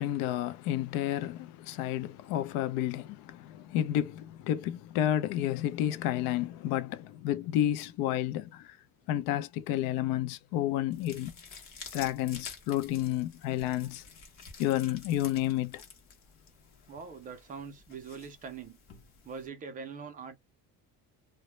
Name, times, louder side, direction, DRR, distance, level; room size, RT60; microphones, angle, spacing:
voice 1, 0.0-8.7 9.1-11.3 11.9-14.0 14.6-15.8, left 12 dB, 85° left, 0.5 m, -31 dB
sound 1, 10.9-19.5, left 5 dB, 40° left, 0.8 m, -50 dB
voice 2, 16.9-18.8 19.2-20.4, right 5 dB, 25° right, 0.4 m, -43 dB
2.1 x 2.0 x 2.9 m
cardioid pair, 175°, 34 cm